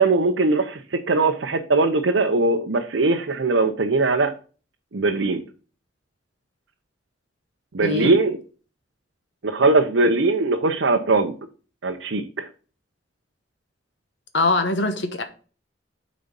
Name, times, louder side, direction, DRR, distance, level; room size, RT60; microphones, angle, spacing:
voice 1, 0.0-4.3 4.9-5.4 7.7-8.4 9.4-11.3 11.8-12.5, right 3 dB, 80° right, 0.7 m, -20 dB
voice 2, 7.8-8.1 14.3-15.2, left 3 dB, 70° left, 1.1 m, -22 dB
7.8 x 4.2 x 5.2 m
head